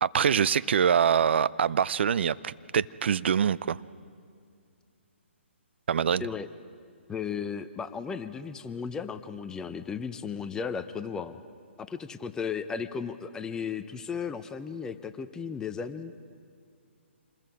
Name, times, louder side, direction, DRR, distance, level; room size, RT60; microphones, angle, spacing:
voice 1, 0.0-3.8 5.9-6.3, right 8 dB, 60° right, 18 dB, 0.5 m, -24 dB
voice 2, 7.1-11.4 11.8-16.1, left 6 dB, 10° left, 10 dB, 0.6 m, -35 dB
27.0 x 21.0 x 4.8 m, 2.3 s
hypercardioid pair, 140°, 7 cm